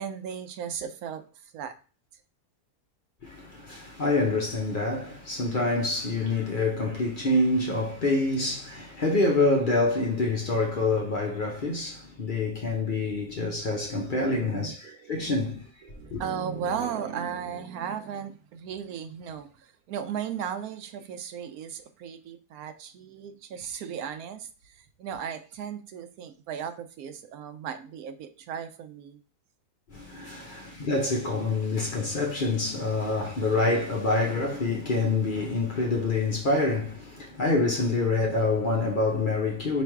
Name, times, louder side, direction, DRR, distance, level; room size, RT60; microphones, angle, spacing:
voice 1, 0.0-1.7 14.2-15.5 15.8-29.2, right 8 dB, 90° right, 1.1 m, -36 dB
voice 2, 3.2-14.8 15.1-15.6 16.1-16.2 29.9-39.8, left 2 dB, 45° left, 0.8 m, -26 dB
3.3 x 3.0 x 4.6 m
omnidirectional pair, 1.5 m